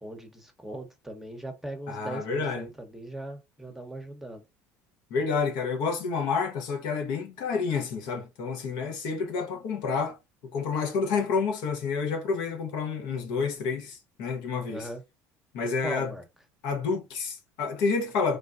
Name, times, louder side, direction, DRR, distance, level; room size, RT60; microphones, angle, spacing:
voice 1, 0.0-4.4 14.7-15.0 15.8-16.2, right 1 dB, 5° right, 0.9 m, -39 dB
voice 2, 1.9-2.7 5.1-10.2 10.5-14.9 15.5-16.1 16.6-18.4, left 5 dB, 70° left, 0.8 m, -29 dB
3.4 x 2.1 x 2.4 m
hypercardioid pair, 75°, 8 cm